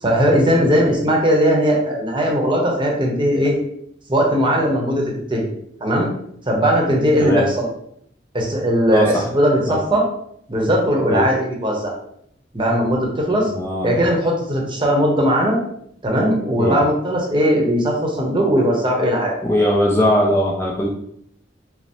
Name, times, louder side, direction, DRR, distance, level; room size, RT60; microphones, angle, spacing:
voice 1, 0.0-3.6 4.1-5.5 5.8-6.1 6.5-7.7 8.3-10.0 10.5-11.9 12.5-13.5 13.8-15.6 16.0-19.7, equal, 30° right, 0 dB, 0.8 m, -18 dB
voice 2, 7.2-7.5 8.9-9.2 9.6-9.8 11.1-11.2 13.5-14.0 16.6-16.8 19.4-20.9, equal, 15° left, -2 dB, 0.5 m, -19 dB
5.3 x 2.0 x 3.0 m, 0.70 s
head